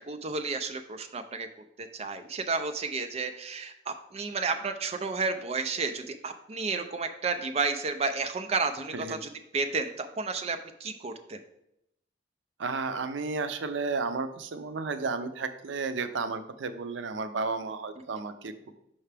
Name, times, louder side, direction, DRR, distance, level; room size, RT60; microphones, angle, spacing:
voice 1, 0.1-1.5 1.8-11.4, right 4 dB, 35° right, 7 dB, 0.4 m, -32 dB
voice 2, 12.6-18.7, right 4 dB, 90° right, 10 dB, 0.5 m, -33 dB
5.7 x 5.5 x 3.3 m, 0.81 s
head